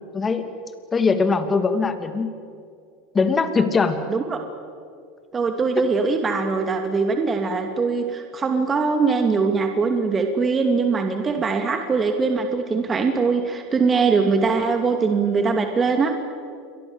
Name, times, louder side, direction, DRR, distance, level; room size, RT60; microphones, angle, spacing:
voice 1, 0.1-0.5 0.9-2.3 3.1-4.0 11.4-11.5, left 4 dB, 20° left, 8 dB, 2.8 m, -21 dB
voice 2, 5.3-16.1, right 4 dB, 25° right, 5 dB, 2.5 m, -22 dB
28.5 x 23.0 x 8.1 m, 2.2 s
supercardioid pair, 115°, 0 cm